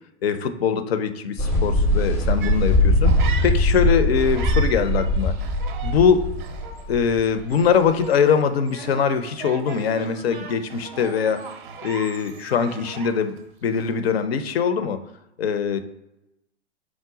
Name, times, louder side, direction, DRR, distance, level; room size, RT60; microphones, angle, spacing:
voice 1, 0.2-3.2 3.4-5.4 5.8-6.3 6.9-11.5 11.8-13.4 13.6-15.0 15.4-15.8, left 6 dB, 60° left, 10 dB, 0.5 m, -22 dB
sound 1, 1.4-8.0, left 1 dB, 5° left, 0.4 m, -21 dB
sound 2, 2.4-3.9 4.2-13.4 13.7-14.1, right 6 dB, 45° right, 0.5 m, -39 dB
4.7 x 2.1 x 3.8 m, 0.89 s
figure-of-eight pair, 110°, 35 cm